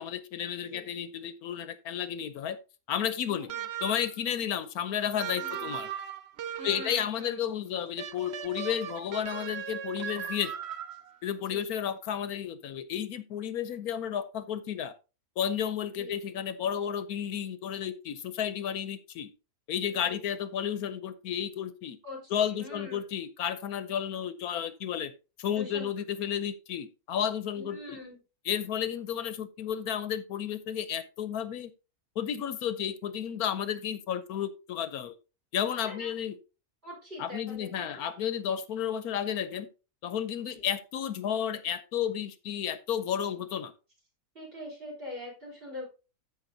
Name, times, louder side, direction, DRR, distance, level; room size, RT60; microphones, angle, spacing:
voice 1, 0.0-2.6 2.9-3.5 3.8-5.9 6.6-10.5 11.2-14.9 15.4-19.3 19.7-22.0 22.3-25.1 25.4-28.0 28.5-31.7 32.2-35.1 35.5-36.4 37.2-39.7 40.0-43.7, left 9 dB, 85° left, 13 dB, 1.2 m, -32 dB
voice 2, 0.6-0.9 3.2-3.7 5.3-5.8 6.6-7.5 11.5-11.7 15.9-16.1 19.9-20.2 22.0-23.0 25.5-25.9 27.6-28.2 35.8-36.1 36.8-38.0 40.4-40.6 44.3-45.9, left 1 dB, 35° right, -1 dB, 4.6 m, -44 dB
sound 1, 3.5-4.2 5.2-7.0 8.0-11.2, right 9 dB, 55° right, 0.8 m, -38 dB
14.0 x 5.6 x 2.7 m, 0.30 s
omnidirectional pair, 1.6 m